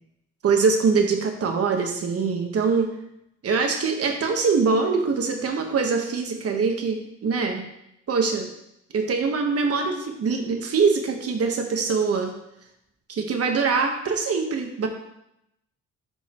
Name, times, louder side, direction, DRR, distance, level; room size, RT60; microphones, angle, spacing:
voice 1, 0.4-2.9 3.4-7.6 8.1-8.5 8.9-12.3 13.1-14.9, right 5 dB, 50° right, 3 dB, 1.4 m, -23 dB
9.1 x 5.4 x 3.1 m, 0.82 s
cardioid pair, 90°, 30 cm